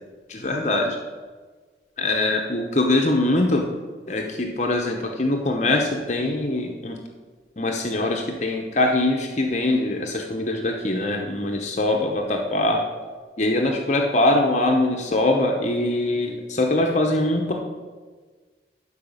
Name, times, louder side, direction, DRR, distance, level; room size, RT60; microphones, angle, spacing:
voice 1, 0.3-1.0 2.0-3.6 4.1-7.0 7.6-12.8 13.4-17.5, left 2 dB, 40° left, 2 dB, 0.7 m, -22 dB
12.0 x 4.8 x 5.4 m, 1.4 s
head